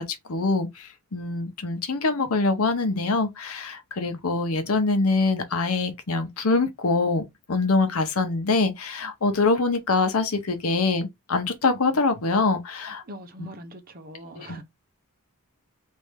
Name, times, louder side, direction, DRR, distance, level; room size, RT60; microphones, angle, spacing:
voice 1, 0.0-13.0 14.3-14.6, left 3 dB, 85° left, 0.8 m, -24 dB
voice 2, 13.1-14.6, equal, 40° right, 0.7 m, -42 dB
3.2 x 2.6 x 3.3 m
head